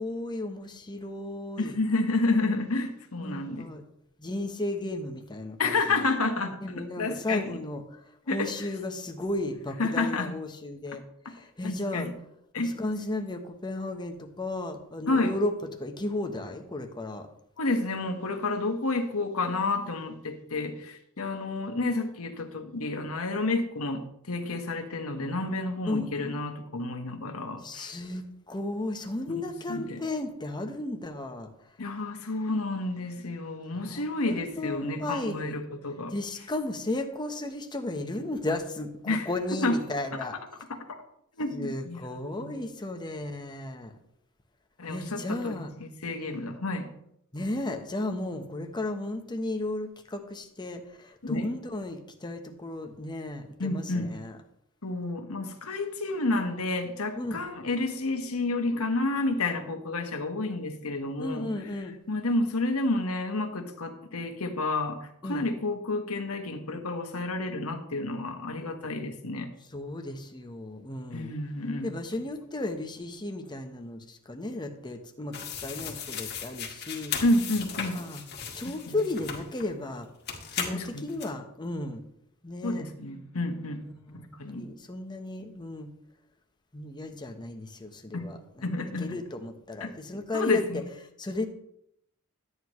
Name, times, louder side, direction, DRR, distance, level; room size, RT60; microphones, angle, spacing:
voice 1, 0.0-1.7 3.2-3.8 4.2-6.1 6.6-8.0 8.3-11.0 11.3-12.1 12.8-15.5 15.8-17.3 25.9-26.1 27.6-31.5 33.8-35.6 36.1-40.4 41.5-43.9 44.9-45.7 47.3-54.4 57.2-57.4 61.2-61.9 65.2-65.4 69.7-71.4 71.8-77.2 77.9-78.2 78.5-80.1 80.5-82.0 82.4-82.9 84.1-84.2 84.5-85.9 86.7-88.7 89.0-90.6 91.2-91.5, left 2 dB, 20° left, 5 dB, 1.1 m, -34 dB
voice 2, 1.6-3.7 5.6-7.6 8.3-8.7 9.8-10.3 11.2-11.3 11.6-12.1 12.5-12.8 15.1-15.3 17.6-28.0 29.3-30.0 31.8-36.1 39.1-39.3 39.6-39.8 40.1-40.2 40.7-41.0 41.4-42.6 44.8-46.9 51.2-51.5 53.6-54.1 54.8-61.5 62.1-69.5 71.1-71.9 77.2-78.0 78.9-79.0 80.7-81.0 82.6-83.8 84.4-84.7 88.1-88.3 88.6-89.2 89.8-89.9 90.3-90.8, left 2 dB, 85° left, 5 dB, 1.4 m, -30 dB
sound 1, 75.3-79.7 80.3-81.3, left 7 dB, 50° left, 1.8 m, -37 dB
12.5 x 9.4 x 3.2 m, 0.74 s
head